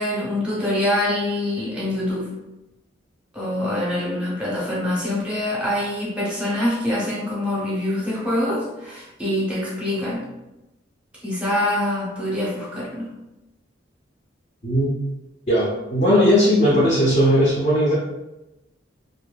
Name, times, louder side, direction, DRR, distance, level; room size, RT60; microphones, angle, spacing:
voice 1, 0.0-2.3 3.3-10.2 11.2-13.1, left 1 dB, 5° right, -7 dB, 0.7 m, -25 dB
voice 2, 15.5-17.9, equal, 40° left, -7 dB, 0.6 m, -18 dB
2.6 x 2.5 x 2.2 m, 0.98 s
head